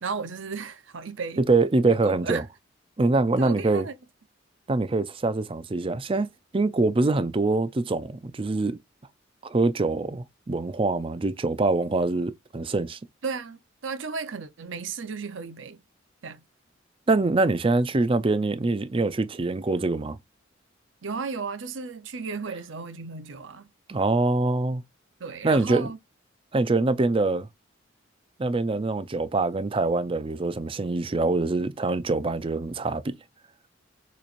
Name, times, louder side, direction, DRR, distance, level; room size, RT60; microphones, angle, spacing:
voice 1, 0.0-1.5 2.0-2.5 3.4-3.9 13.2-15.8 16.2-16.4 21.0-23.7 25.2-26.0, right 5 dB, 75° right, 0.7 m, -34 dB
voice 2, 1.5-2.4 3.0-3.9 4.7-6.3 6.5-8.8 9.4-13.0 17.1-20.2 23.9-24.8 25.4-25.9 26.5-27.5 28.4-33.1, right 3 dB, 30° right, 0.5 m, -24 dB
6.8 x 3.1 x 2.5 m
head